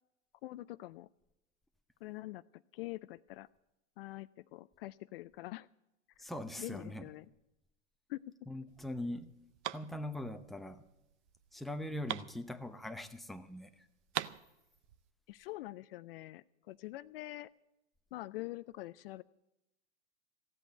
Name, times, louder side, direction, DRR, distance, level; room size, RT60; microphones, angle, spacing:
voice 1, 0.4-1.1 2.0-3.5 4.0-5.7 6.2-6.3 6.6-7.3 8.1-8.3 15.3-17.5 18.1-19.2, left 18 dB, 50° left, 16 dB, 0.4 m, -45 dB
voice 2, 6.2-7.0 8.5-9.3 9.7-10.8 11.5-13.9, left 1 dB, ahead, 7 dB, 0.7 m, -41 dB
sound 1, 8.7-13.2 13.5-13.6 13.8-15.1, right 13 dB, 65° right, 0.7 m, -43 dB
15.0 x 8.2 x 9.2 m, 0.93 s
hypercardioid pair, 105°, 38 cm